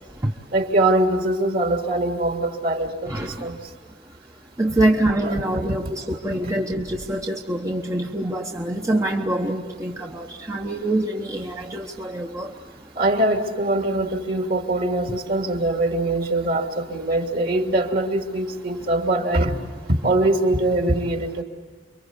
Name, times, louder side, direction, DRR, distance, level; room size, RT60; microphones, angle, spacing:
voice 1, 0.5-3.6 5.2-5.4 6.1-6.5 9.6-9.7 11.5-11.6 12.9-19.5 19.9-21.4, right 1 dB, 50° right, 3 dB, 3.0 m, -23 dB
voice 2, 4.6-12.5, right 1 dB, 15° right, 1 dB, 1.2 m, -25 dB
29.5 x 23.5 x 8.3 m, 1.5 s
head